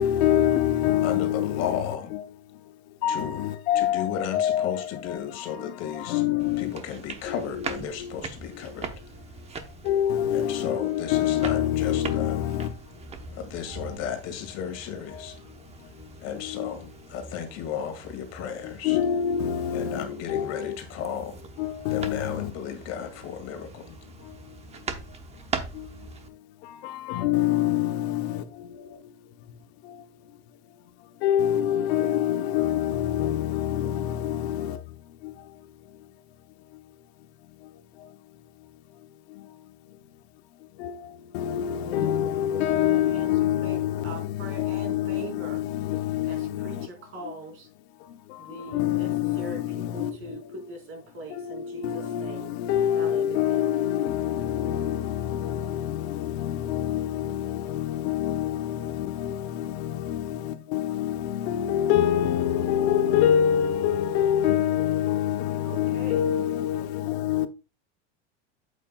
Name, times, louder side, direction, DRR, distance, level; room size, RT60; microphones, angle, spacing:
voice 1, 0.0-1.8 2.1-2.2 2.5-6.8 7.3-8.2 8.5-8.8 9.3-13.4 13.7-14.0 15.1-16.7 18.6-20.8 21.6-22.5 24.2-24.9 25.7-29.0 29.8-30.0 31.2-36.1 36.7-36.8 37.6-38.2 38.6-38.7 39.0-39.7 40.6-46.9 47.2-47.3 48.0-50.7 51.3-67.5, left 10 dB, 70° left, 0.8 m, -27 dB
voice 2, 1.0-2.1 3.1-3.5 3.8-6.2 6.6-8.9 10.3-12.4 13.3-15.4 16.2-19.0 19.7-21.4 21.9-24.0, left 8 dB, 45° left, 2.1 m, -34 dB
sound 1, 6.4-26.3, right 4 dB, 20° right, 0.9 m, -41 dB
voice 3, 41.7-43.3 43.6-43.8 44.0-45.6 46.3-47.7 48.4-52.5 52.9-53.6 65.6-66.3, right 2 dB, 40° right, 4.3 m, -41 dB
8.5 x 8.2 x 2.3 m
supercardioid pair, 135°, 34 cm